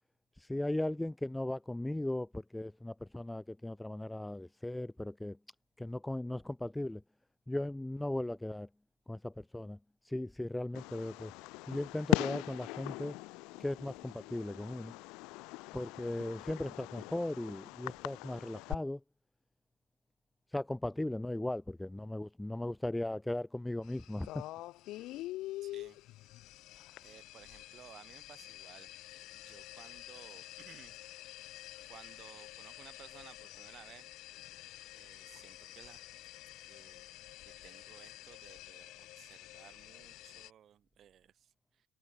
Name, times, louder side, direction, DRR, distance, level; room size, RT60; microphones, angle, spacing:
voice 1, 0.4-5.4 5.8-7.0 7.5-8.7 9.1-9.8 10.0-11.3 11.7-13.2 13.6-14.9 15.7-19.0 20.5-24.4, left 1 dB, 5° left, 0.3 m, -37 dB
Fireworks, 10.7-18.7, left 24 dB, 75° left, 2.0 m, -39 dB
sound 1, 23.8-40.5, left 16 dB, 60° left, 2.8 m, -48 dB
voice 2, 25.6-26.0 27.0-28.9 29.3-31.0 31.9-34.1 34.4-34.5 35.0-36.1 36.7-37.1 37.4-41.9, right 10 dB, 40° right, 7.0 m, -57 dB
cardioid pair, 150°, 0 cm